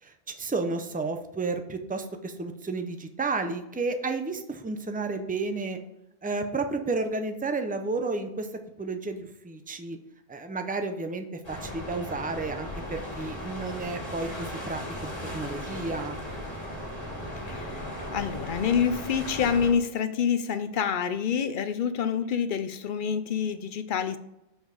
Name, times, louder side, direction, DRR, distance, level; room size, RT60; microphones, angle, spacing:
voice 1, 0.0-5.8 6.2-8.5 8.8-10.0 10.3-16.2, right 3 dB, 10° right, 6 dB, 0.4 m, -32 dB
sound 1, 11.4-19.7, equal, 25° left, 2.5 m, -37 dB
voice 2, 17.3-17.8 18.1-24.2, left 7 dB, 60° left, 12 dB, 0.6 m, -27 dB
6.2 x 5.3 x 4.9 m, 0.89 s
omnidirectional pair, 1.1 m